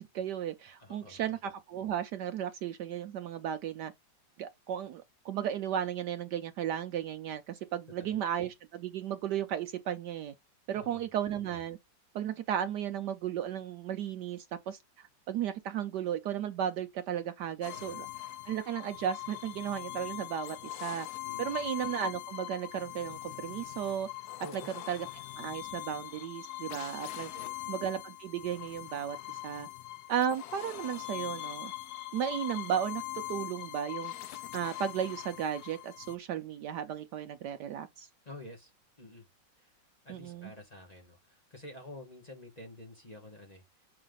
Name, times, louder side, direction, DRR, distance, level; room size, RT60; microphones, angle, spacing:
voice 1, 0.0-3.9 4.4-10.3 10.7-11.8 12.1-18.1 18.5-21.1 21.4-24.1 24.9-25.1 25.4-27.3 27.7-29.7 30.1-31.7 32.1-34.1 34.5-38.1 40.1-40.5, right 9 dB, 70° right, 1.1 m, -35 dB
voice 2, 0.8-1.2 8.0-8.2 10.7-11.1 17.7-18.0 21.2-21.7 24.4-24.7 27.3-27.6 38.2-38.7 39.0-39.3 39.6-39.8 40.0-43.6, left 1 dB, 20° left, 1.8 m, -49 dB
sound 1, 17.6-36.2, left 16 dB, 65° left, 1.1 m, -42 dB
7.6 x 5.7 x 4.0 m
omnidirectional pair, 2.1 m